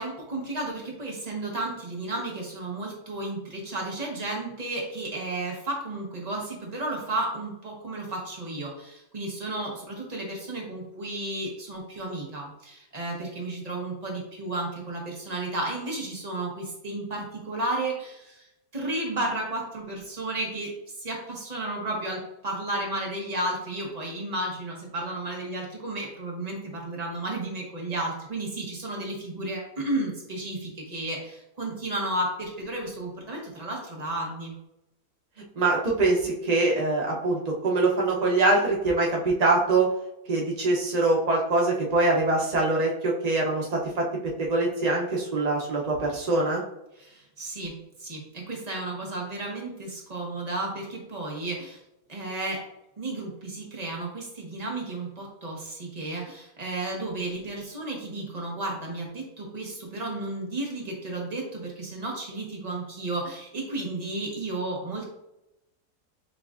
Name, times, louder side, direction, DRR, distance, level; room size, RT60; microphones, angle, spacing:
voice 1, 0.0-18.5 18.7-20.7 21.0-34.5 47.0-51.8 52.1-52.6 53.0-65.1, right 2 dB, 30° right, -2 dB, 1.0 m, -33 dB
voice 2, 35.6-39.9 40.3-44.0 44.4-46.6, right 2 dB, 75° right, -2 dB, 0.3 m, -23 dB
7.1 x 2.4 x 2.4 m, 0.91 s
omnidirectional pair, 1.7 m